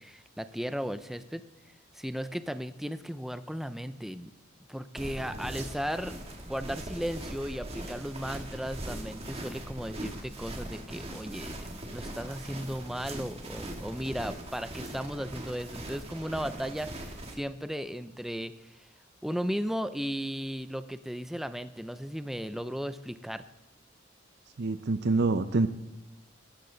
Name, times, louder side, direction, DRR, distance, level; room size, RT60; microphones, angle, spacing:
voice 1, 0.0-1.4 1.9-4.3 4.7-6.2 6.4-11.5 11.9-18.7 19.2-23.4, equal, ahead, 11 dB, 0.5 m, -35 dB
sound 1, 5.0-17.3, right 1 dB, 30° right, 1.8 m, -40 dB
voice 2, 24.6-25.7, right 3 dB, 55° right, 11 dB, 0.6 m, -26 dB
16.5 x 12.5 x 3.9 m, 0.97 s
head